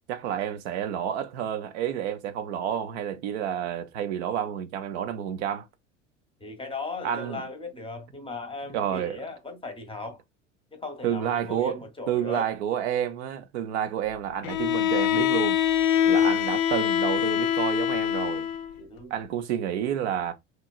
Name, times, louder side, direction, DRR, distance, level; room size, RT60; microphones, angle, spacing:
voice 1, 0.1-5.7 7.0-7.4 8.7-9.2 11.0-11.8 12.1-15.6 16.1-18.5 19.1-20.3, right 9 dB, 60° right, 0.5 m, -29 dB
voice 2, 6.4-10.2 10.7-12.5 16.0-16.3 18.8-19.1, left 3 dB, 15° left, 0.7 m, -37 dB
Bowed string instrument, 14.4-18.7, left 9 dB, 50° left, 0.5 m, -24 dB
3.0 x 2.2 x 2.3 m
figure-of-eight pair, 75°, 38 cm